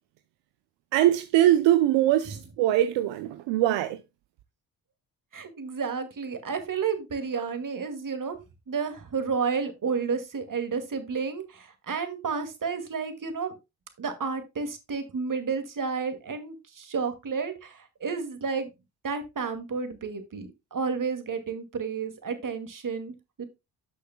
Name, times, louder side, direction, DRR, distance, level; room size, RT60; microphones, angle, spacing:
voice 1, 0.9-4.0, right 13 dB, 80° right, 0.7 m, -22 dB
voice 2, 5.3-8.4 8.7-13.6 14.0-18.7 19.0-23.4, right 5 dB, 45° right, 2.3 m, -31 dB
12.0 x 6.4 x 2.2 m
supercardioid pair, 50°, 43 cm